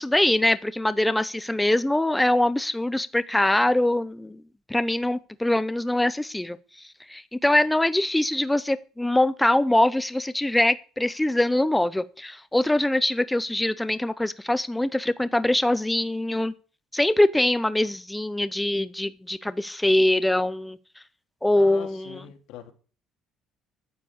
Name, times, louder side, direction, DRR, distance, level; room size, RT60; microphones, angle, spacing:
voice 1, 0.0-4.4 4.7-6.6 7.1-16.5 16.9-20.8 21.4-22.2, left 1 dB, 5° left, 0.5 m, -23 dB
voice 2, 21.6-22.7, left 10 dB, 90° left, 2.6 m, -42 dB
9.6 x 9.4 x 8.0 m
cardioid pair, 165°, 0 cm